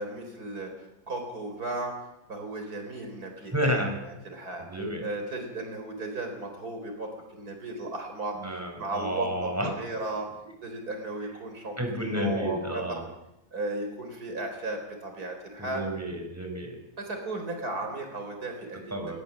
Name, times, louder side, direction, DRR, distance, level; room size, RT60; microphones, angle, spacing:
voice 1, 0.0-3.5 3.8-3.9 4.2-4.6 5.0-8.3 8.8-10.3 10.6-13.0 13.5-15.8 17.0-19.2, right 2 dB, 80° right, 4 dB, 4.9 m, -35 dB
voice 2, 3.5-4.0 4.7-5.1 8.3-9.7 11.8-13.0 15.6-16.8 18.9-19.2, equal, 10° right, 3 dB, 5.1 m, -30 dB
21.0 x 19.5 x 7.4 m, 0.86 s
omnidirectional pair, 1.6 m